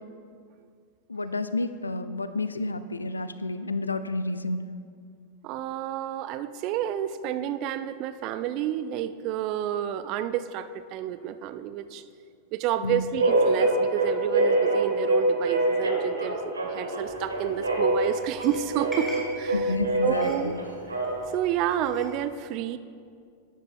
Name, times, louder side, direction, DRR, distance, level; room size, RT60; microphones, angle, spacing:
voice 1, 1.1-4.6 12.8-13.0 19.5-20.6, left 2 dB, 80° left, 12 dB, 0.4 m, -30 dB
voice 2, 5.4-12.0 12.5-19.8 20.0-20.5 21.3-22.8, right 10 dB, 40° right, 13 dB, 0.3 m, -30 dB
sound 1, 13.2-21.4, right 2 dB, 80° right, 1.2 m, -25 dB
sound 2, 17.0-22.2, right 1 dB, ahead, 2.3 m, -44 dB
12.0 x 10.0 x 2.5 m, 2.3 s
figure-of-eight pair, 90°, 0 cm